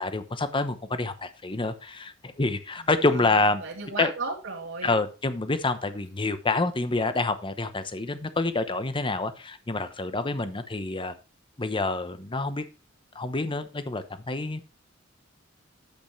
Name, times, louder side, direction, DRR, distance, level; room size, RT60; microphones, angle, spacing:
voice 1, 0.0-3.6 4.0-4.1 4.8-11.1 11.6-12.6 13.1-14.6, left 3 dB, 25° left, 0.8 m, -27 dB
voice 2, 2.8-5.0, right 3 dB, 85° right, 2.5 m, -35 dB
10.5 x 8.0 x 3.2 m
head